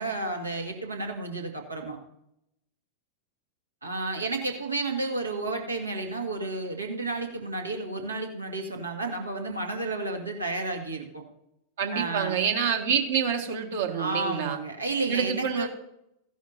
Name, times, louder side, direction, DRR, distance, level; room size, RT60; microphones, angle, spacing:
voice 1, 0.0-2.0 3.8-11.2 11.9-12.4 14.0-15.7, right 2 dB, 80° right, 2 dB, 1.9 m, -31 dB
voice 2, 11.8-14.6 15.1-15.7, right 7 dB, 60° right, 4 dB, 1.7 m, -27 dB
16.0 x 11.5 x 2.7 m, 0.81 s
figure-of-eight pair, 90°, 0 cm